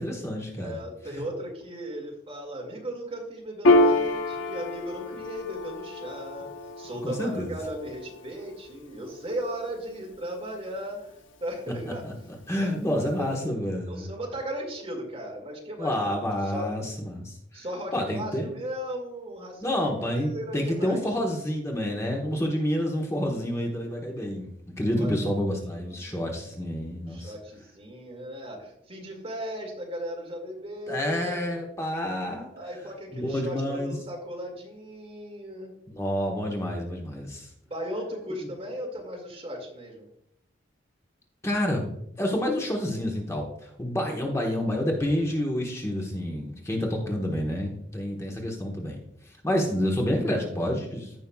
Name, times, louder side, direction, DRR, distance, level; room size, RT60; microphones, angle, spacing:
voice 1, 0.0-0.8 1.1-1.2 7.0-7.5 12.0-12.1 12.5-14.1 15.8-17.6 17.9-18.5 19.6-24.5 24.8-27.3 30.9-32.5 33.1-34.0 35.9-37.5 41.4-49.0 49.4-51.1, equal, 15° left, 0 dB, 1.2 m, -28 dB
voice 2, 0.6-6.5 6.8-11.1 11.4-12.1 12.6-13.3 13.9-15.9 16.4-16.7 17.5-21.0 22.4-22.5 24.9-25.2 26.0-26.3 27.1-31.4 32.5-35.7 37.6-40.1, equal, 30° right, 0 dB, 2.1 m, -37 dB
Piano, 3.6-10.6, left 2 dB, 85° left, 0.8 m, -27 dB
15.0 x 5.6 x 2.3 m, 0.75 s
head